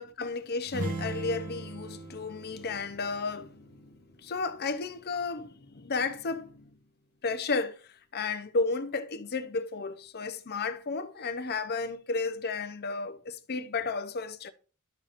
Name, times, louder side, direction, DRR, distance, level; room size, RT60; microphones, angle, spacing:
voice 1, 0.0-6.7 7.2-14.5, left 4 dB, 45° left, 0.7 m, -33 dB
sound 1, 0.6-4.4, right 2 dB, 85° right, 1.8 m, -39 dB
12.0 x 5.7 x 2.5 m
head